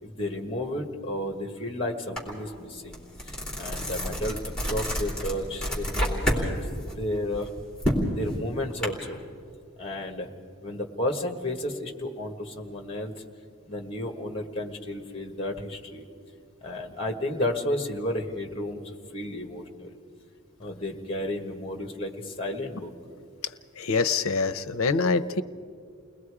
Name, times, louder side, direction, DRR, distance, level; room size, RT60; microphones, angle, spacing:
voice 1, 0.0-4.4 4.7-6.7 6.9-7.5 8.1-9.2 9.8-10.3 10.6-13.1 13.7-16.0 16.6-18.8 19.1-19.9 20.6-22.9, left 1 dB, 25° left, 4 dB, 1.6 m, -32 dB
sound 1, 2.2-2.3 2.7-6.4 6.8-8.9, equal, 5° left, 3.4 m, -28 dB
voice 2, 23.8-25.4, left 4 dB, 80° left, 12 dB, 0.7 m, -25 dB
29.5 x 20.5 x 4.9 m, 2.3 s
head